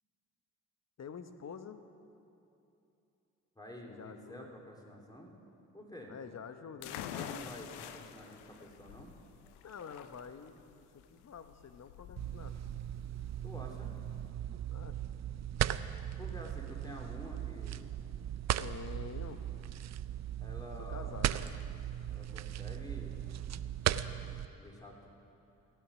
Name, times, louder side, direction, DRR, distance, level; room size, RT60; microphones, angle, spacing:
voice 1, 1.0-1.8 3.9-4.5 6.1-7.1 9.6-12.6 14.7-15.0 18.6-19.4 20.9-21.4, left 6 dB, 40° left, 9 dB, 1.0 m, -47 dB
voice 2, 3.5-5.3 5.7-6.1 7.1-9.1 13.4-13.9 16.2-17.9 20.4-21.2 22.1-23.2 24.2-25.1, equal, 10° left, 0 dB, 3.0 m, -49 dB
sound 1, 6.8-14.3, left 10 dB, 70° left, 0.7 m, -47 dB
sound 2, 12.2-24.5, right 11 dB, 40° right, 0.5 m, -37 dB
16.0 x 9.1 x 6.2 m, 2.9 s
hypercardioid pair, 40°, 41 cm